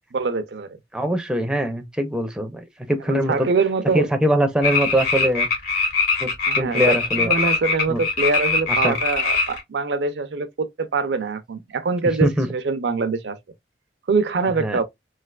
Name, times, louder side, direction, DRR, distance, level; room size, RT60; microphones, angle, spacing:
voice 1, 0.1-0.7 3.1-4.1 6.5-13.4 14.1-14.8, right 4 dB, 70° right, 0.5 m, -24 dB
voice 2, 0.9-3.5 3.9-5.5 6.2-6.3 6.6-7.3 7.9-8.0 8.8-9.0 12.2-12.5 14.6-14.8, equal, 5° right, 0.4 m, -22 dB
sound 1, 4.6-9.6, left 4 dB, 55° left, 1.8 m, -21 dB
3.2 x 2.8 x 2.2 m
head